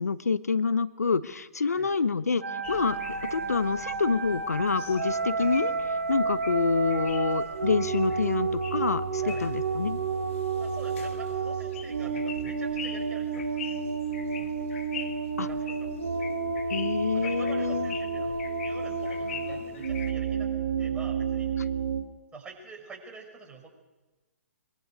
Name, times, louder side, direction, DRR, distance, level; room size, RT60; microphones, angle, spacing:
voice 1, 0.0-3.0 3.2-5.7 6.1-10.0 15.4-15.5 16.7-17.9, left 5 dB, 80° left, 15 dB, 0.9 m, -27 dB
sound 1, 2.4-22.0, right 5 dB, 70° right, 3.0 m, -31 dB
sound 2, 2.6-20.1, left 7 dB, 55° left, 2.1 m, -44 dB
voice 2, 10.6-13.8 14.1-14.5 15.3-15.9 17.1-18.4 18.6-20.5 20.8-21.5 22.3-23.7, right 4 dB, 15° right, 0 dB, 5.6 m, -46 dB
23.0 x 23.0 x 6.5 m, 1.2 s
figure-of-eight pair, 125°, 8 cm